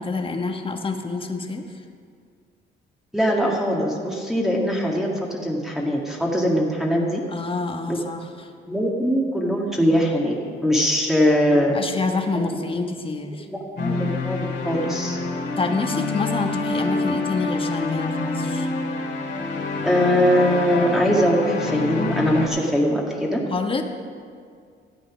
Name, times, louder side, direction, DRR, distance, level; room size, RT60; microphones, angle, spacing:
voice 1, 0.0-1.8 7.3-8.2 11.5-13.5 15.6-18.7 23.5-23.8, left 3 dB, 25° left, 5 dB, 1.2 m, -27 dB
voice 2, 3.1-7.2 7.9-8.0 8.7-10.4 10.6-11.8 12.3-12.6 13.5-15.2 19.8-23.4, equal, ahead, -3 dB, 1.8 m, -21 dB
sound 1, 13.8-22.5, left 3 dB, 60° left, 2.4 m, -27 dB
13.5 x 8.3 x 6.0 m, 2.2 s
cardioid pair, 90°, 20 cm